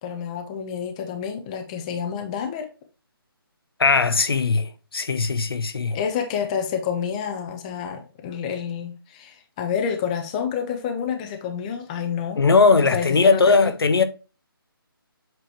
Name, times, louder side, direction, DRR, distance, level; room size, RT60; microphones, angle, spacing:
voice 1, 0.0-2.7 5.9-12.4 12.9-13.7, left 7 dB, 15° left, 0.7 m, -28 dB
voice 2, 3.8-6.0 12.3-14.0, left 4 dB, 75° left, 0.9 m, -19 dB
7.8 x 3.1 x 4.4 m
figure-of-eight pair, 160°, 13 cm